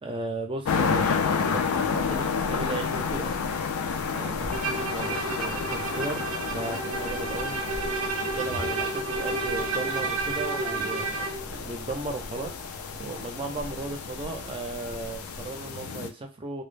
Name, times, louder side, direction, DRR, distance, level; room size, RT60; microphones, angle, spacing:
voice 1, 0.0-3.3 4.1-7.6 8.3-16.6, right 2 dB, 25° right, 0.4 m, -36 dB
sound 1, 0.7-16.1, left 6 dB, 90° left, 0.4 m, -31 dB
sound 2, 1.3-16.0, equal, 35° left, 0.6 m, -44 dB
Bowed string instrument, 4.5-11.5, right 3 dB, 80° right, 0.5 m, -31 dB
2.2 x 2.0 x 3.2 m
head